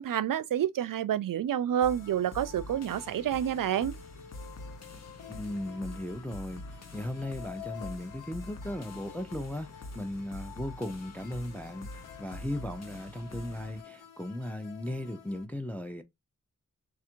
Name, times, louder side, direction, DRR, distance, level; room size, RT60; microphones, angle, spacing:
voice 1, 0.0-3.9, right 10 dB, 80° right, 0.5 m, -29 dB
sound 1, 1.7-15.5, left 9 dB, 75° left, 1.0 m, -50 dB
sound 2, 1.8-13.8, left 1 dB, 55° left, 0.8 m, -46 dB
voice 2, 5.3-16.0, left 1 dB, 5° left, 0.5 m, -37 dB
3.4 x 2.4 x 4.4 m
wide cardioid pair, 115°, 32 cm